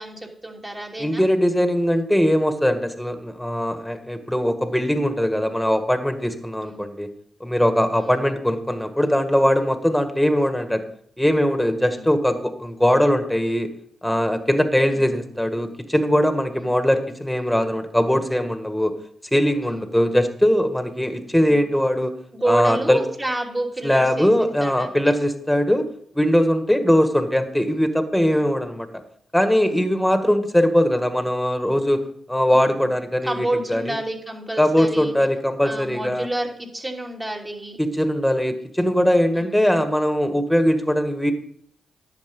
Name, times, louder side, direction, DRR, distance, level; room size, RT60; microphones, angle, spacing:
voice 1, 0.0-1.2 6.6-6.8 7.9-8.2 11.9-12.1 14.9-15.1 16.6-16.7 19.6-19.9 21.4-21.6 22.3-24.3 24.6-25.0 26.7-26.9 28.3-28.5 29.6-29.8 32.5-32.9 33.2-35.1 35.6-37.8 39.3-39.6, right 1 dB, 25° right, 0 dB, 2.9 m, -29 dB
voice 2, 1.0-7.1 7.4-10.8 11.2-13.7 14.0-18.9 19.3-22.1 22.5-23.0 23.8-25.9 26.1-28.9 29.3-32.0 32.3-34.0 34.6-36.3 37.8-41.3, equal, 5° left, 8 dB, 1.7 m, -20 dB
11.0 x 7.2 x 5.4 m, 0.65 s
supercardioid pair, 45°, 0 cm